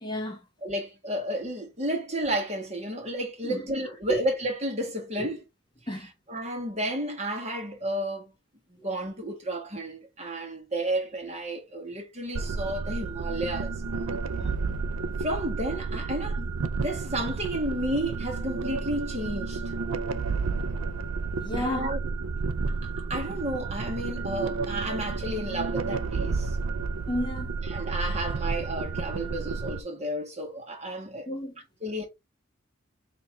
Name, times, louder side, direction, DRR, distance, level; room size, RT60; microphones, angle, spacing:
voice 1, 0.0-0.4 3.4-3.7 4.1-4.2 5.2-5.3 5.9-6.1 8.8-8.9 14.4-14.5 19.9-20.0 21.4-21.9 22.6-22.8 27.1-27.6 31.3-31.6, equal, 20° left, 0.8 m, -33 dB
voice 2, 0.6-5.4 6.3-8.3 8.8-13.8 15.2-16.5 16.8-19.6 21.6-22.0 22.7-26.6 27.7-31.3 31.8-32.1, right 1 dB, 30° right, 1.4 m, -32 dB
sound 1, 12.3-29.8, right 4 dB, 90° right, 0.5 m, -31 dB
4.4 x 2.9 x 3.2 m
head